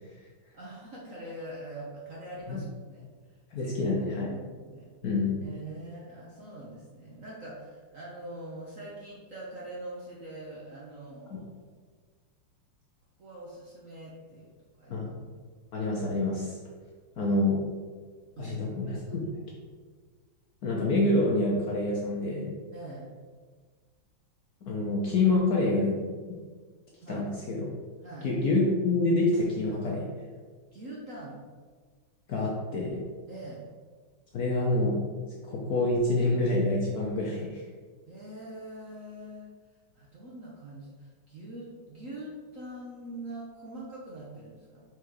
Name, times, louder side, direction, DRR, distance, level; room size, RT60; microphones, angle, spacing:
voice 1, 0.5-4.9 5.4-11.5 13.2-14.5 14.8-15.1 18.4-18.6 18.9-19.2 22.7-23.1 27.0-27.3 28.0-28.4 30.7-31.4 33.3-33.7 38.1-39.5 39.9-44.8, right 1 dB, 50° right, -5 dB, 1.0 m, -43 dB
voice 2, 3.5-4.3 5.0-5.4 14.9-15.1 15.7-16.6 17.2-17.6 18.4-19.2 20.6-22.5 24.7-26.1 27.1-27.7 28.2-30.1 32.3-33.0 34.3-35.0 35.5-37.6, left 2 dB, 60° left, -3 dB, 1.0 m, -27 dB
4.7 x 4.1 x 4.8 m, 1.5 s
omnidirectional pair, 2.4 m